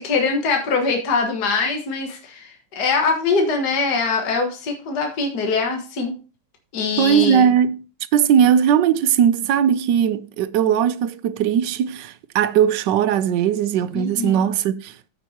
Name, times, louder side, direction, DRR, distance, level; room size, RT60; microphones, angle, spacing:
voice 1, 0.0-6.1 6.7-7.5 13.9-14.4, left 4 dB, 55° left, 2.0 m, -22 dB
voice 2, 7.0-7.8 8.1-14.9, right 9 dB, 75° right, 1.2 m, -18 dB
14.5 x 5.5 x 2.9 m
omnidirectional pair, 2.1 m